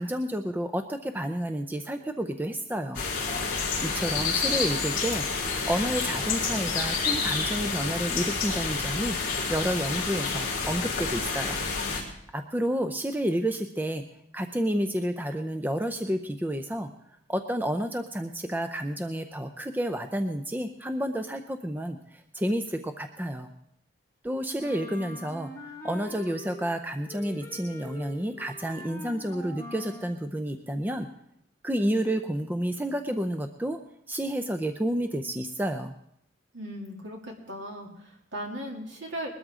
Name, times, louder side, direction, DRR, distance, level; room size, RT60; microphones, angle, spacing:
voice 1, 0.0-3.0 3.8-9.2 9.5-11.6 12.3-14.0 14.3-16.9 17.3-23.5 24.2-31.1 31.6-33.8 34.1-35.9, right 1 dB, 10° right, 7 dB, 0.5 m, -30 dB
sound 1, 2.9-12.0, left 4 dB, 45° left, 4.1 m, -29 dB
Wind instrument woodwind instrument, 24.6-26.8 27.1-30.2, left 1 dB, 15° left, 1.5 m, -43 dB
voice 2, 36.5-39.3, equal, 65° right, 0 dB, 2.8 m, -37 dB
21.0 x 13.0 x 3.7 m, 0.73 s
head